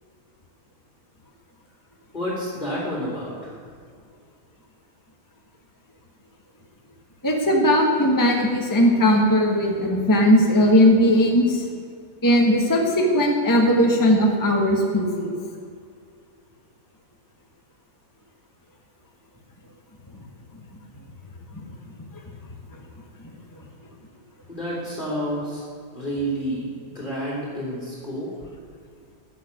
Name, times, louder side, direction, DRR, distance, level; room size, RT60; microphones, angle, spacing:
voice 1, 2.1-3.6 24.5-25.6 25.9-28.5, equal, 35° left, -5 dB, 3.2 m, -29 dB
voice 2, 7.2-11.6 12.2-15.3, equal, 15° left, 1 dB, 1.3 m, -18 dB
14.5 x 6.6 x 9.4 m, 2.2 s
omnidirectional pair, 1.6 m